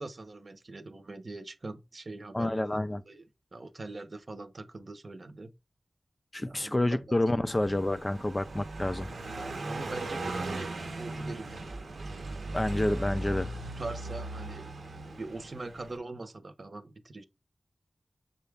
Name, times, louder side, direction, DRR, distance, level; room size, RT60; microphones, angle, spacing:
voice 1, 0.0-3.2 3.5-5.5 6.4-7.1 9.4-10.7 11.0-11.7 12.3-12.6 13.7-14.7 15.2-17.2, right 2 dB, 50° right, 0.7 m, -42 dB
voice 2, 2.3-3.0 6.3-9.1 12.5-13.5, left 1 dB, 25° left, 0.4 m, -28 dB
Car passing by, 7.5-16.0, right 2 dB, 90° right, 0.8 m, -38 dB
6.9 x 2.3 x 3.4 m
wide cardioid pair, 70°, 0 cm